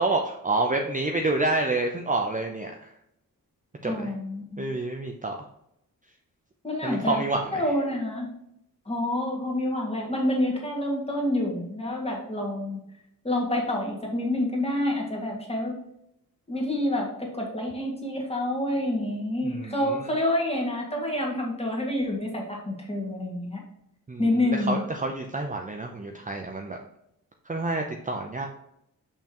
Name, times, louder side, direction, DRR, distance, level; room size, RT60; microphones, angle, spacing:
voice 1, 0.0-2.9 3.8-4.1 4.6-5.3 6.8-7.6 19.4-20.0 24.1-26.8 27.5-28.5, right 2 dB, 20° right, 2 dB, 0.6 m, -28 dB
voice 2, 3.8-4.6 6.6-7.2 7.5-8.3 8.9-12.8 13.2-15.8 16.5-23.6 24.2-24.8, left 1 dB, 15° left, -2 dB, 1.9 m, -28 dB
6.8 x 5.8 x 2.9 m, 0.78 s
wide cardioid pair, 140°, 36 cm